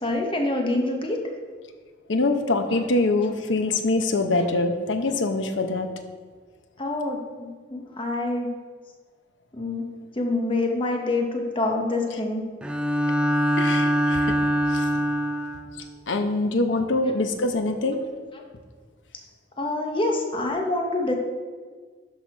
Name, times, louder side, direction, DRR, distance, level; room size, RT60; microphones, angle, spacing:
voice 1, 0.0-1.2 6.8-8.5 9.5-9.8 10.2-12.4 16.7-16.8 19.6-21.2, left 2 dB, 30° left, 2 dB, 1.0 m, -26 dB
voice 2, 2.1-5.9 13.6-14.4 14.7-15.1 16.1-18.0, left 2 dB, 80° left, 6 dB, 0.9 m, -24 dB
Bowed string instrument, 12.6-15.7, equal, 5° right, 0.5 m, -23 dB
12.5 x 4.2 x 4.8 m, 1.5 s
head